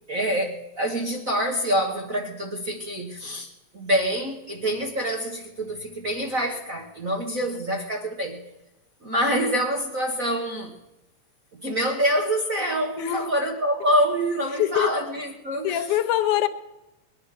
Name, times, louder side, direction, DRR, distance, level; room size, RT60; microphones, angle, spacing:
voice 1, 0.1-3.5 3.7-8.4 9.0-10.7 11.6-15.8, equal, 40° right, 1.2 m, -26 dB
voice 2, 13.0-13.3 14.5-14.9 15.6-16.5, left 12 dB, 85° left, 2.3 m, -23 dB
21.0 x 9.7 x 6.5 m
omnidirectional pair, 3.5 m